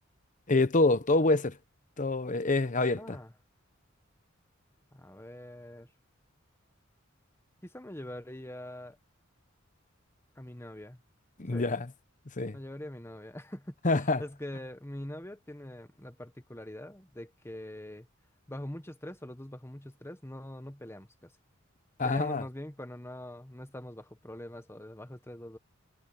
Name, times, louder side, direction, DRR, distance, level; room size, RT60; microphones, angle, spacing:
voice 1, 0.5-1.5 2.0-3.2 11.4-11.9 12.4-12.6 13.8-14.2 22.0-22.4, left 2 dB, 40° left, 0.9 m, -26 dB
voice 2, 3.0-3.3 4.9-5.9 7.6-9.0 10.4-11.0 11.5-11.7 12.5-18.1 18.5-21.3 22.0-25.6, left 1 dB, 10° left, 1.3 m, -43 dB
head